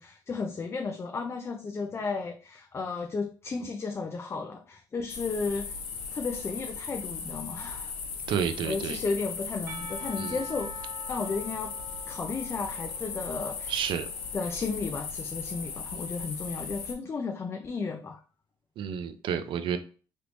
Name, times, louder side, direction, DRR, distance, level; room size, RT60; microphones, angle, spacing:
voice 1, 0.0-5.8 6.1-7.9 8.6-11.7 12.1-13.7 14.3-18.2, left 4 dB, 30° left, 3 dB, 0.4 m, -34 dB
sound 1, 5.1-16.9, left 5 dB, 75° left, 0.7 m, -38 dB
voice 2, 8.3-9.0 10.2-10.4 13.7-14.1 18.8-19.8, right 8 dB, 65° right, 10 dB, 0.4 m, -30 dB
Percussion / Church bell, 9.7-14.9, left 1 dB, 30° right, 0.9 m, -46 dB
3.2 x 3.1 x 2.5 m, 0.39 s
cardioid pair, 90°, 9 cm